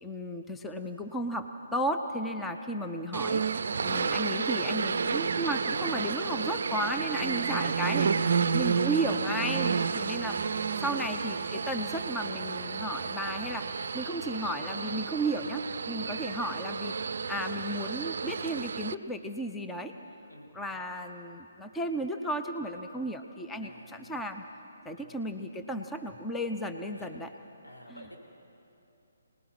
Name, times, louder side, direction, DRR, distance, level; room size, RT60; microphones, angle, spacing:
voice 1, 0.0-8.1 8.5-10.4 10.8-16.9 17.3-19.9 20.5-24.4 24.8-27.3, right 1 dB, 5° left, 5 dB, 0.6 m, -34 dB
sound 1, 3.1-18.9, right 5 dB, 50° right, 0.5 m, -31 dB
voice 2, 7.0-9.7 16.0-16.2 20.3-20.6 23.6-24.2 25.0-25.3 26.9-27.2 27.6-28.2, equal, 85° left, -2 dB, 5.1 m, -52 dB
26.0 x 19.5 x 6.2 m, 2.9 s
figure-of-eight pair, 140°, 0 cm